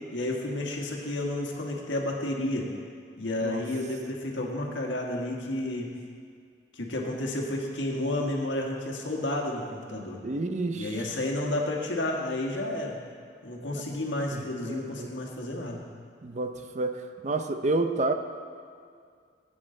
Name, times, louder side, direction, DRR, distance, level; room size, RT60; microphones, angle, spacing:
voice 1, 0.1-2.7 3.2-5.9 6.8-10.2 10.7-13.0 13.4-15.8, left 1 dB, 80° left, 0 dB, 1.6 m, -31 dB
voice 2, 10.2-11.2 13.9-14.0 14.3-15.2 16.2-18.1, right 2 dB, 40° right, 7 dB, 0.5 m, -30 dB
15.5 x 8.5 x 3.8 m, 2.2 s
head